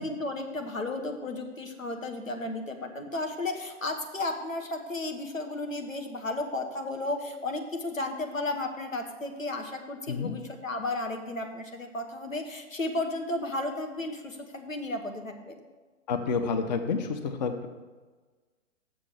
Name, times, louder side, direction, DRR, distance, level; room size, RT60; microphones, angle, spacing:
voice 1, 0.0-15.6, left 2 dB, 85° left, 4 dB, 1.4 m, -33 dB
voice 2, 16.1-17.7, left 5 dB, 35° left, 6 dB, 0.7 m, -29 dB
6.9 x 6.6 x 7.1 m, 1.3 s
figure-of-eight pair, 120°, 39 cm